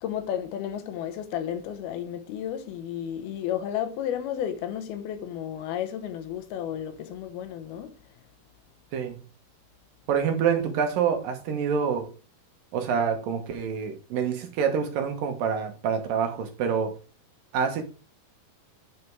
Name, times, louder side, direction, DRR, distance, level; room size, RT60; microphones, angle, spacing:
voice 1, 0.0-7.9, left 10 dB, 80° left, 2.9 m, -32 dB
voice 2, 10.1-12.1 12.7-16.9 17.5-17.8, right 7 dB, 70° right, 2.6 m, -26 dB
9.6 x 5.1 x 4.6 m
omnidirectional pair, 4.5 m